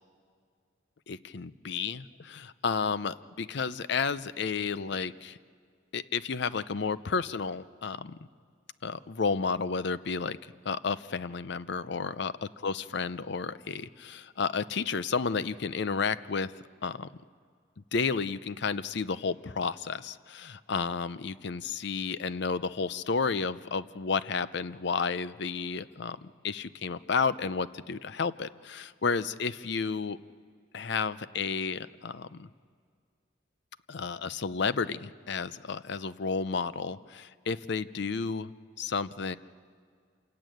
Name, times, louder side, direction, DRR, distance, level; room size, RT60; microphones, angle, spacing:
voice 1, 1.1-5.4 5.9-8.2 8.8-16.5 16.8-17.1 17.9-30.2 30.7-32.5 33.9-39.4, left 5 dB, 60° left, 15 dB, 0.6 m, -32 dB
26.5 x 15.5 x 9.3 m, 2.1 s
head